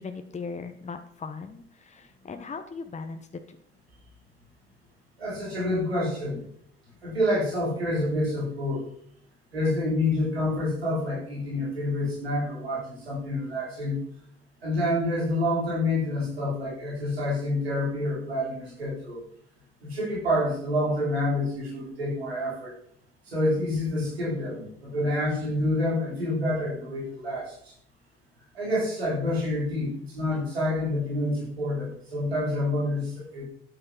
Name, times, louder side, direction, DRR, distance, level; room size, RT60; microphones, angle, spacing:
voice 1, 0.0-3.6, left 4 dB, 25° left, 7 dB, 1.1 m, -38 dB
voice 2, 5.2-6.4 7.0-8.9 9.5-14.0 14.6-19.2 19.8-22.7 23.3-27.7 28.5-33.4, left 1 dB, 85° right, -5 dB, 4.3 m, -28 dB
12.0 x 10.0 x 4.6 m, 0.64 s
figure-of-eight pair, 50°, 30 cm